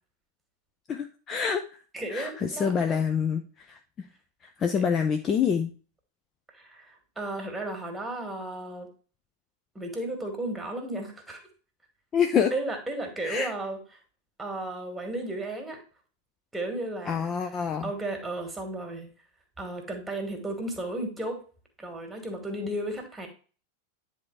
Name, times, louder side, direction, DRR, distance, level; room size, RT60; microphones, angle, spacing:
voice 1, 0.9-1.6 2.1-3.8 4.6-5.7 12.1-12.5 13.2-13.5 17.1-17.9, left 7 dB, 25° left, 6 dB, 0.6 m, -26 dB
voice 2, 1.9-3.0 4.7-4.8 6.5-8.9 9.7-11.4 12.5-13.8 14.4-15.8 16.5-17.3 17.8-19.1 19.6-21.4 21.8-23.3, right 1 dB, 5° right, 3 dB, 2.3 m, -34 dB
9.8 x 3.6 x 4.8 m, 0.38 s
figure-of-eight pair, 90°, 0 cm